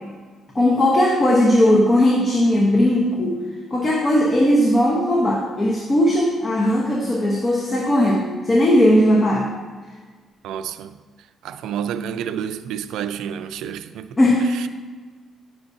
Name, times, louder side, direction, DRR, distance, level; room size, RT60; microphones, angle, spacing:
voice 1, 0.5-3.4 3.7-9.5 14.2-14.7, left 1 dB, 30° left, 1.1 m, -18 dB
voice 2, 10.4-11.0 11.4-14.2 14.5-14.7, right 8 dB, 85° right, 0.3 m, -29 dB
9.6 x 6.0 x 2.7 m
cardioid pair, 90°, 0 cm